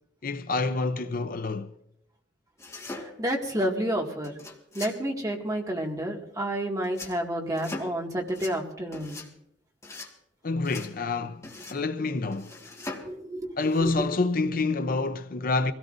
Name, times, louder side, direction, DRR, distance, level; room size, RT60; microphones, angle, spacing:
voice 1, 0.2-1.7 10.4-11.4 11.7-12.5 13.6-15.7, left 3 dB, 50° left, 0.6 m, -27 dB
sound 1, 2.6-3.4 4.2-5.0 6.8-7.2 7.5-8.0 8.3-8.6 8.9-9.3 9.8-10.1 10.6-10.9 11.4-11.8 12.3-13.1 13.6-13.9, left 2 dB, 15° left, 1.8 m, -40 dB
voice 2, 3.2-4.4 4.7-9.2 13.0-13.6, right 1 dB, 20° right, 2.1 m, -30 dB
24.5 x 17.0 x 2.6 m
head